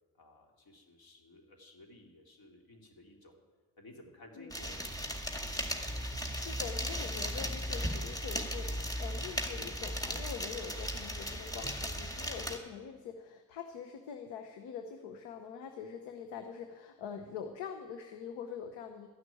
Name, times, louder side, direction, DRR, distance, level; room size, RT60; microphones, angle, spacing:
voice 1, 0.2-3.3 3.8-5.1, left 1 dB, 60° left, 1 dB, 3.1 m, -56 dB
sound 1, 4.5-12.6, equal, 10° left, 2.0 m, -36 dB
voice 2, 6.0-19.1, left 7 dB, 85° left, 6 dB, 1.0 m, -44 dB
13.0 x 6.2 x 9.9 m, 1.4 s
supercardioid pair, 65°, 42 cm